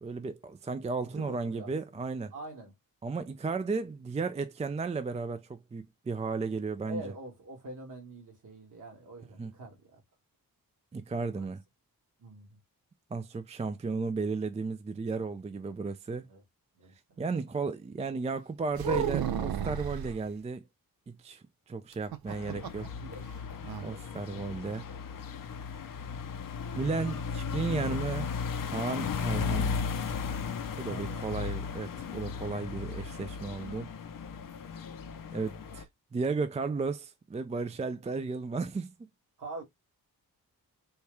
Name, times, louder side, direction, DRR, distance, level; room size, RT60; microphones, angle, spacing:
voice 1, 0.0-2.3 3.0-7.0 9.4-9.5 10.9-11.6 13.1-16.3 17.2-20.6 21.1-22.8 23.8-24.8 26.8-28.3 28.7-29.8 30.8-33.9 35.3-35.9 36.1-38.9, right 4 dB, 20° right, 0.4 m, -34 dB
voice 2, 1.0-2.0 2.3-2.7 6.9-10.0 11.3-11.5 12.2-12.6 16.3-16.4 16.8-17.6 22.5-24.0 24.3-24.4 24.7-25.2 30.9-31.4 39.4-39.6, right 2 dB, 55° right, 1.8 m, -46 dB
sound 1, 18.8-20.2 21.9-22.9 23.2-23.3 23.6-23.9, right 8 dB, 80° right, 0.7 m, -32 dB
sound 2, 22.3-35.8, left 6 dB, 65° left, 0.7 m, -36 dB
4.4 x 2.3 x 3.2 m
wide cardioid pair, 115°, 36 cm